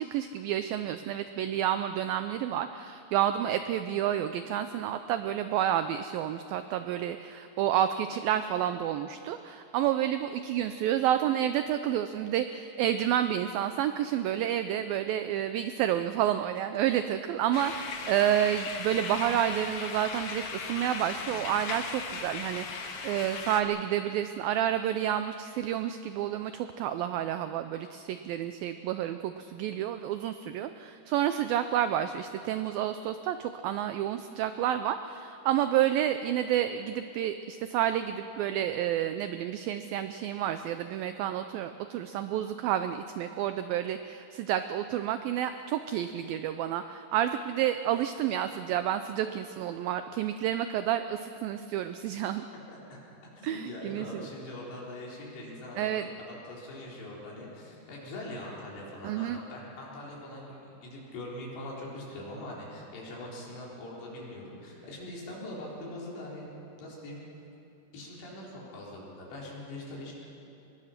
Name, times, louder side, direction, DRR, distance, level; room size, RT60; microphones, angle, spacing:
voice 1, 0.0-52.5 53.4-54.3 55.8-56.0 59.0-59.4, right 11 dB, 90° right, 9 dB, 2.0 m, -30 dB
sound 1, 17.5-23.6, left 5 dB, 55° left, 2.2 m, -37 dB
voice 2, 52.7-53.0 53.4-55.9 56.2-66.4 66.8-67.2 67.9-70.1, left 1 dB, 85° left, -5 dB, 6.4 m, -42 dB
24.5 x 21.0 x 5.9 m, 2.9 s
omnidirectional pair, 4.9 m